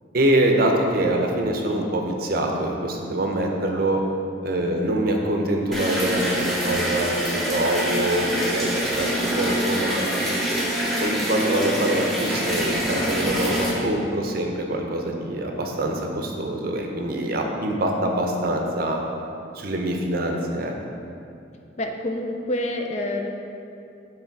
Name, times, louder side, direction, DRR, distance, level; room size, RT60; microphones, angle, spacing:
voice 1, 0.1-4.0 4.4-10.1 11.0-19.0 19.5-20.7, right 1 dB, 50° right, 2 dB, 0.6 m, -24 dB
sound 1, 5.7-13.7, equal, ahead, 0.8 m, -25 dB
voice 2, 21.8-23.3, left 1 dB, 35° left, 3 dB, 0.4 m, -27 dB
7.0 x 3.2 x 4.5 m, 2.6 s
head